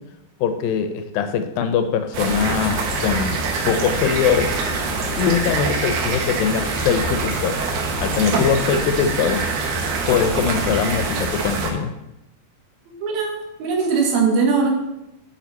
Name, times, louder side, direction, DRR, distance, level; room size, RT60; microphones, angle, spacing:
voice 1, 0.4-4.6 5.2-7.6 8.0-9.4 10.1-11.9, left 7 dB, 80° left, 9 dB, 2.3 m, -22 dB
sound 1, 2.1-11.7, right 3 dB, 65° right, 2.3 m, -24 dB
voice 2, 12.9-14.7, right 5 dB, 85° right, 1 dB, 3.4 m, -20 dB
8.7 x 7.4 x 4.1 m, 0.89 s
omnidirectional pair, 4.2 m